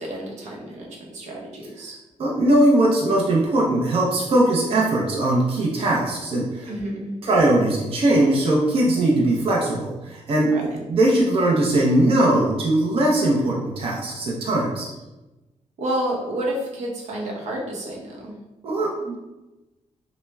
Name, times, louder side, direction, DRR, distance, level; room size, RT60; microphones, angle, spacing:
voice 1, 0.0-1.9 6.7-7.2 10.5-10.8 15.8-18.4, right 1 dB, 90° right, -2 dB, 0.8 m, -30 dB
voice 2, 2.2-6.7 7.2-14.9 18.6-19.2, right 1 dB, 55° right, -3 dB, 0.6 m, -20 dB
5.4 x 2.1 x 2.3 m, 1.1 s
wide cardioid pair, 170°, 12 cm